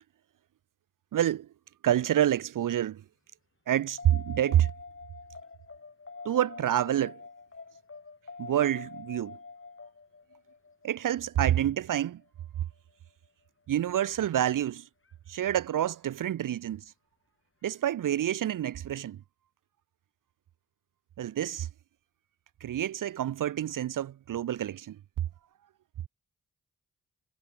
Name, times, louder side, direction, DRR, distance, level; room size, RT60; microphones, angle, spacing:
voice 1, 1.1-1.5 1.8-3.0 3.7-4.7 6.2-7.2 8.4-9.4 10.8-12.2 13.7-14.9 15.3-16.8 17.6-19.2 21.2-21.7 22.6-25.0, right 11 dB, 70° right, 0.7 m, -28 dB
sound 1, 4.0-12.4 15.1-15.2, left 4 dB, 40° left, 2.9 m, -46 dB
cardioid pair, 55°, 34 cm